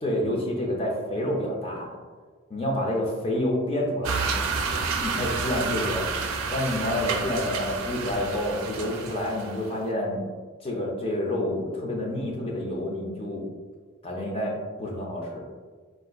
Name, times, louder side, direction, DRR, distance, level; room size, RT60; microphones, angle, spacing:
voice 1, 0.0-1.9 2.5-4.3 5.0-6.1 6.5-10.2 10.6-13.4 14.0-14.5 14.8-15.4, left 1 dB, 25° left, -1 dB, 0.5 m, -28 dB
sound 1, 4.0-9.7, right 4 dB, 90° right, 0.4 m, -30 dB
4.0 x 2.4 x 2.2 m, 1.5 s
head